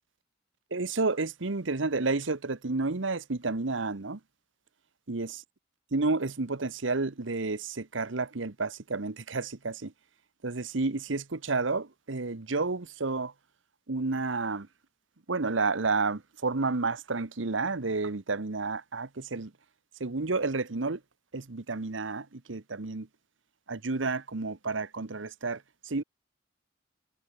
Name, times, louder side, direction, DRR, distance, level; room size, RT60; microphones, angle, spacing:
voice 1, 0.7-4.2 5.1-5.4 5.9-9.9 10.4-13.3 13.9-14.7 15.3-19.5 20.0-21.0 21.3-23.1 23.7-26.0, right 3 dB, 85° right, 1.1 m, -31 dB
head